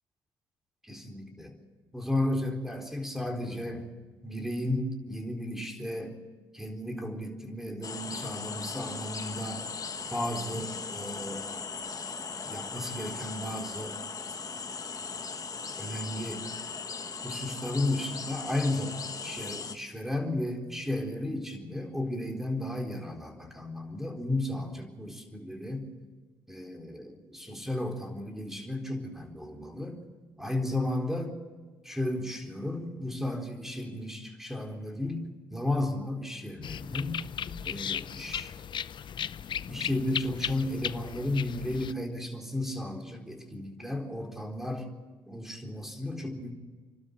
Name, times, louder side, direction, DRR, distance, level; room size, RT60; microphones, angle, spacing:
voice 1, 0.8-1.6 1.9-3.9 4.2-6.2 6.5-9.7 10.1-11.5 12.5-14.0 15.8-16.5 17.2-25.9 26.5-30.0 30.4-31.4 31.8-37.3 37.6-38.5 39.7-44.9 45.3-46.5, left 1 dB, 5° right, 3 dB, 4.2 m, -34 dB
sound 1, 7.8-19.8, left 5 dB, 35° left, 1.3 m, -38 dB
sound 2, 36.6-41.9, left 8 dB, 50° left, 0.6 m, -36 dB
27.5 x 12.5 x 8.5 m, 1.4 s
supercardioid pair, 65°, 10 cm